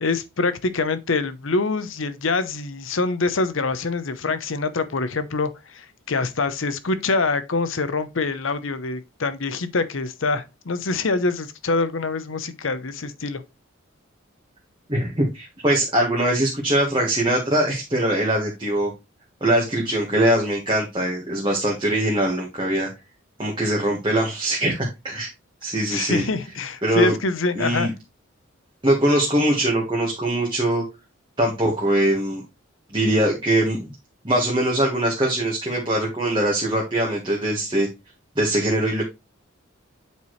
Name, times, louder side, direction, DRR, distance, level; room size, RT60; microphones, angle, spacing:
voice 1, 0.0-13.4 25.9-27.9, left 3 dB, 70° left, 0.8 m, -25 dB
voice 2, 14.9-18.9 19.4-22.9 23.4-25.3 25.6-26.2 26.8-27.1 27.5-27.9 28.8-30.8 31.4-32.4 32.9-33.9 34.2-37.9 38.3-39.0, right 1 dB, 25° right, 1.4 m, -22 dB
8.4 x 4.7 x 3.1 m
head